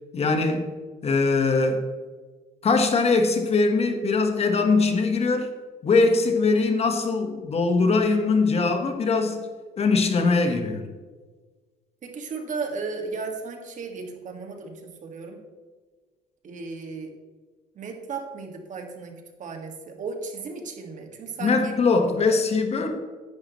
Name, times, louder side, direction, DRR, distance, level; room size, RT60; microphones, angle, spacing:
voice 1, 0.1-0.7 1.0-1.8 2.6-5.5 5.8-9.4 9.8-10.9 21.4-23.0, left 3 dB, 40° left, 5 dB, 1.3 m, -22 dB
voice 2, 12.0-15.4 16.4-17.1 17.8-21.7, right 4 dB, 50° right, 3 dB, 1.9 m, -35 dB
10.5 x 10.0 x 3.1 m, 1.4 s
cardioid pair, 110°, 17 cm